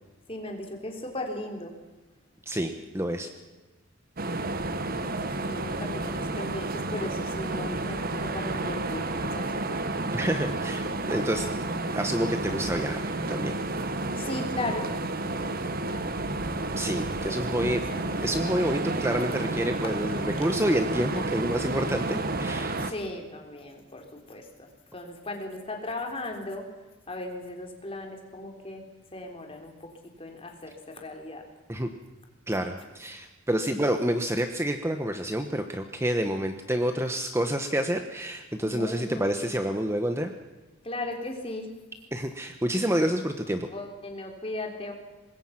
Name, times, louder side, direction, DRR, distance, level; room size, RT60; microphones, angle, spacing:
voice 1, 0.3-1.7 4.7-9.8 14.2-14.9 17.3-17.4 17.7-17.8 22.8-24.4 24.9-26.6 27.1-28.8 29.1-29.9 30.2-31.4 38.6-39.3 40.8-41.7 43.7-44.9, left 1 dB, 30° left, 2 dB, 3.7 m, -37 dB
voice 2, 2.5-3.3 10.1-11.5 11.9-13.6 16.8-17.8 18.2-22.8 31.7-31.9 32.5-40.3 42.1-43.7, right 1 dB, 15° right, 6 dB, 1.1 m, -28 dB
sound 1, 4.2-22.9, right 2 dB, 45° right, 1.4 m, -31 dB
25.0 x 21.0 x 6.0 m, 1.2 s
head